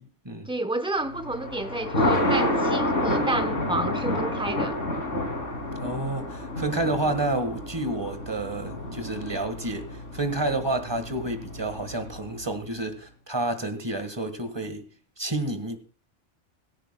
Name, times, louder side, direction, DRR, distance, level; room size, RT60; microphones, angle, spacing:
voice 1, 0.5-4.8, right 2 dB, 5° right, 0.7 m, -30 dB
Thunder, 1.1-12.4, left 1 dB, 75° left, 3.1 m, -29 dB
voice 2, 5.8-14.9 15.2-15.8, right 2 dB, 20° right, 1.5 m, -29 dB
17.5 x 16.0 x 2.2 m
omnidirectional pair, 1.3 m